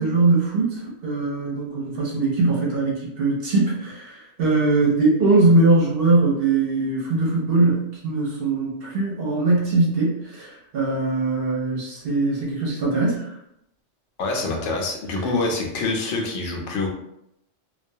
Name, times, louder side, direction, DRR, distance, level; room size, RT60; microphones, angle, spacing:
voice 1, 0.0-4.1 4.4-10.5 10.7-13.2, right 3 dB, 60° right, -3 dB, 0.8 m, -21 dB
voice 2, 14.2-16.9, left 3 dB, 80° left, 1 dB, 0.9 m, -25 dB
2.3 x 2.2 x 2.6 m, 0.79 s
omnidirectional pair, 1.2 m